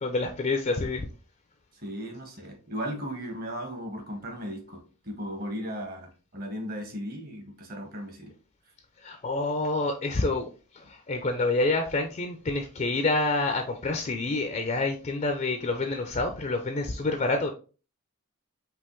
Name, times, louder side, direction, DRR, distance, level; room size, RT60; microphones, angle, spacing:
voice 1, 0.0-1.0 9.0-10.5 10.8-17.5, left 2 dB, 35° left, 0.4 m, -27 dB
voice 2, 1.7-8.3, equal, 45° right, 1.2 m, -36 dB
5.3 x 2.9 x 3.1 m
head